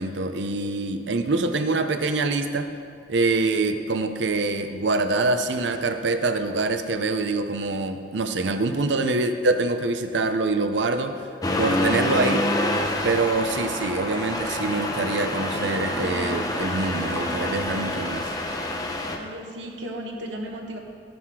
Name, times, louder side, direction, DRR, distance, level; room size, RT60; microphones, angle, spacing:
voice 1, 0.0-2.7 3.1-11.2 11.6-12.5 13.0-18.3, right 3 dB, 70° right, 8 dB, 0.7 m, -25 dB
Accelerating revving vroom, 11.4-19.2, left 1 dB, 20° left, 0.8 m, -27 dB
voice 2, 19.1-20.8, equal, 90° right, 1 dB, 1.6 m, -35 dB
12.0 x 9.3 x 4.8 m, 2.3 s
head